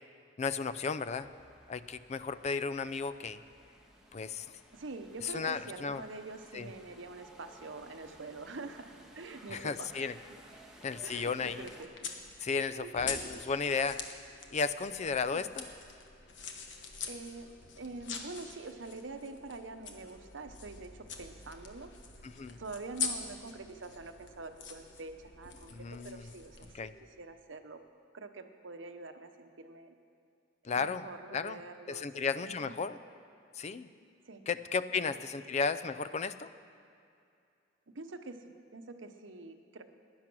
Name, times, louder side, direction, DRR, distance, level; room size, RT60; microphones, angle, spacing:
voice 1, 0.4-1.3 1.7-3.4 4.1-4.5 5.2-6.0 6.5-6.7 9.5-10.1 10.8-11.6 12.4-14.0 14.5-15.6 22.2-22.6 25.7-26.2 26.7-26.9 30.6-31.0 31.3-31.6 31.9-33.0 33.6-33.9 34.5-36.5, left 5 dB, 35° left, 13 dB, 0.4 m, -34 dB
sound 1, 1.2-11.8, right 1 dB, 5° right, 1.4 m, -57 dB
voice 2, 4.7-10.0 11.0-12.1 12.7-13.4 15.3-15.5 17.0-21.9 22.6-27.8 28.1-29.9 30.7-32.1 32.4-32.7 34.2-34.4 34.9-35.2 37.9-39.8, right 3 dB, 85° right, 8 dB, 0.9 m, -46 dB
sound 2, 11.2-26.7, left 5 dB, 70° left, 1.3 m, -44 dB
16.0 x 10.5 x 6.2 m, 2.4 s
head